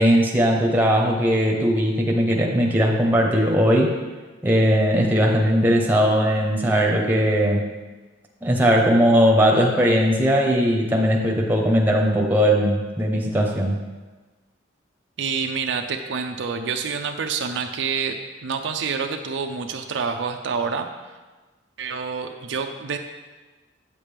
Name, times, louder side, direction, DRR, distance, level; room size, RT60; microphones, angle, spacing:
voice 1, 0.0-4.0 4.4-7.6 8.4-13.7, equal, 10° right, -1 dB, 1.0 m, -19 dB
voice 2, 15.2-20.9 21.8-23.0, right 5 dB, 70° right, 4 dB, 0.5 m, -27 dB
8.8 x 7.3 x 3.4 m, 1.3 s
head